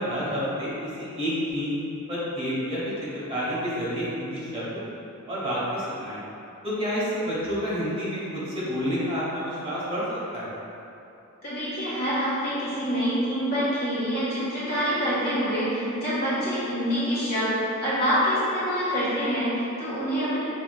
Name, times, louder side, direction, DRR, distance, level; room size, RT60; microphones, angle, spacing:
voice 1, 0.0-1.8 2.1-4.8 5.3-6.2 6.6-10.5, equal, 25° right, -10 dB, 1.0 m, -29 dB
voice 2, 11.4-20.4, equal, 45° left, -10 dB, 1.4 m, -26 dB
5.7 x 2.8 x 2.2 m, 2.8 s
head